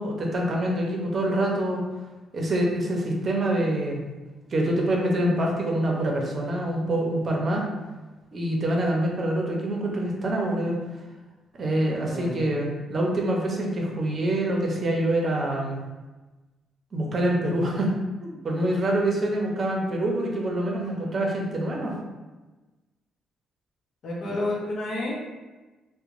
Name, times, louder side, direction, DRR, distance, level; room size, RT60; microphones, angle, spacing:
voice 1, 0.0-1.8 2.3-4.0 4.5-7.7 8.3-10.8 11.6-15.8 16.9-17.9 18.2-21.9 24.2-24.3, right 1 dB, 40° right, -1 dB, 0.6 m, -25 dB
voice 2, 12.0-12.5 24.0-25.3, left 2 dB, 65° left, -4 dB, 0.7 m, -30 dB
2.9 x 2.1 x 2.5 m, 1.2 s
cardioid pair, 90°, 0 cm